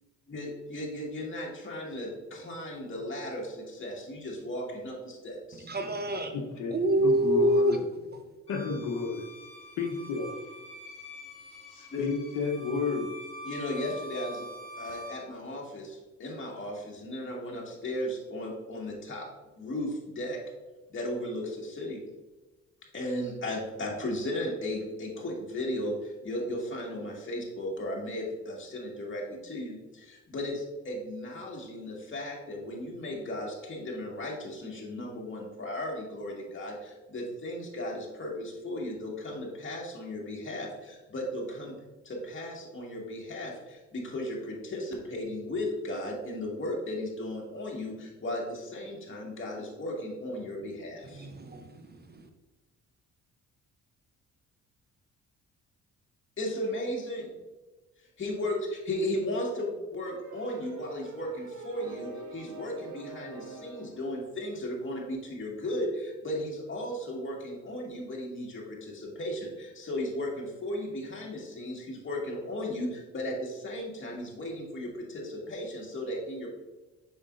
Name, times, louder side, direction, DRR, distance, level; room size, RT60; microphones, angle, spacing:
voice 1, 0.3-5.7 11.9-12.1 13.4-14.5 14.8-19.3 19.6-20.4 20.9-22.0 22.9-41.8 42.0-51.3 56.4-57.3 58.2-76.5, left 1 dB, 40° left, -2 dB, 2.0 m, -35 dB
voice 2, 5.7-6.3 6.7-7.8 51.2-51.7 52.1-52.3, right 1 dB, 35° right, 6 dB, 0.8 m, -26 dB
voice 3, 6.3-7.8 8.5-9.2 9.8-10.3 11.7-13.1, left 4 dB, 80° left, 1 dB, 1.1 m, -32 dB
Bowed string instrument, 8.5-15.3, equal, 20° left, 2.2 m, -45 dB
sound 1, 60.0-64.0, right 3 dB, 75° right, 0.9 m, -45 dB
7.2 x 5.9 x 2.6 m, 1.1 s
cardioid pair, 90°, 30 cm